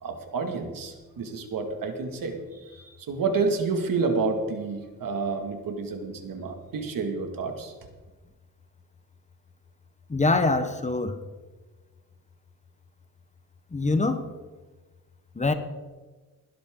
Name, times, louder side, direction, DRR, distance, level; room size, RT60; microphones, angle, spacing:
voice 1, 0.0-7.7, right 4 dB, 65° right, 5 dB, 2.2 m, -29 dB
voice 2, 10.1-11.1 13.7-14.2 15.4-15.5, left 3 dB, 20° left, 8 dB, 1.1 m, -24 dB
20.0 x 12.0 x 3.8 m, 1.3 s
cardioid pair, 130°, 35 cm